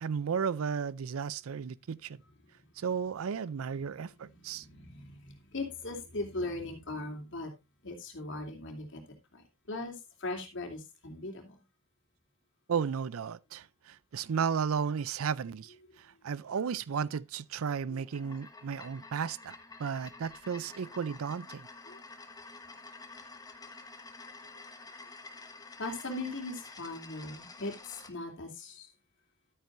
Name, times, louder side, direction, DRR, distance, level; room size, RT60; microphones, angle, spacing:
voice 1, 0.0-2.2 2.8-4.7 12.7-15.7 16.2-21.7, right 6 dB, 75° right, 0.4 m, -34 dB
voice 2, 2.4-2.8 3.0-3.1 3.7-7.5 7.8-11.6 17.9-18.0 21.9-22.0 24.2-24.3 25.8-28.9, left 2 dB, 60° left, 3.0 m, -40 dB
sound 1, 18.0-28.1, left 3 dB, 20° left, 1.2 m, -49 dB
12.5 x 9.1 x 2.6 m
head